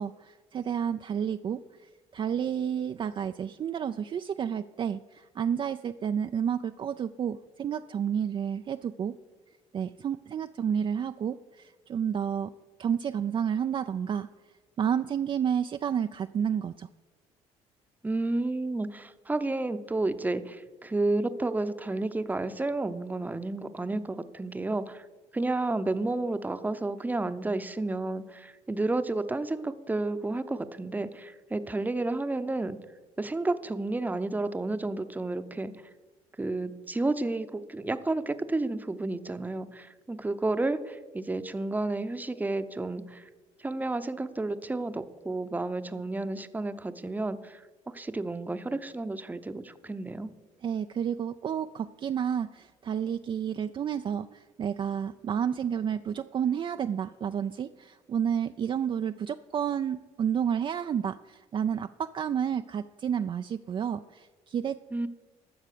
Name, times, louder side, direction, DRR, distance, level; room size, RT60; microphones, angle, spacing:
voice 1, 0.0-9.1 9.7-12.5 12.8-14.3 14.8-16.9 50.6-64.8, right 8 dB, 40° right, 8 dB, 0.4 m, -30 dB
voice 2, 18.0-25.0 25.3-32.8 33.2-35.7 36.4-43.3 43.6-47.6 47.9-50.3 64.9-65.1, right 2 dB, 15° right, 11 dB, 0.7 m, -31 dB
12.5 x 7.2 x 6.7 m, 1.3 s
supercardioid pair, 85°, 13 cm